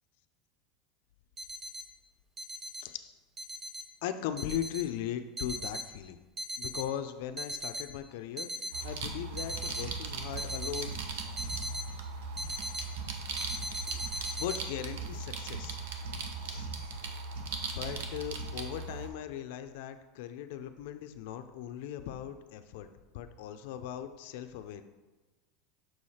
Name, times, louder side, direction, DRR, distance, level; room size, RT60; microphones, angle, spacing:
sound 1, 1.4-1.8 2.4-2.8 3.4-3.8 4.4-4.8 5.4-5.8 6.4-6.8 7.4-7.8 8.4-8.8 9.4-9.8 10.4-10.8 11.4-11.8 12.4-12.8 13.4-14.6, equal, 25° right, 0.7 m, -38 dB
voice 1, 2.8-3.1 4.0-6.2 6.6-10.9 14.1-15.8 16.5-16.7 17.8-22.9 23.1-24.8, left 10 dB, 70° left, 9 dB, 0.5 m, -38 dB
sound 2, 8.7-19.1, right 4 dB, 85° right, 0.9 m, -38 dB
6.2 x 4.8 x 4.2 m, 1.2 s
supercardioid pair, 145°, 0 cm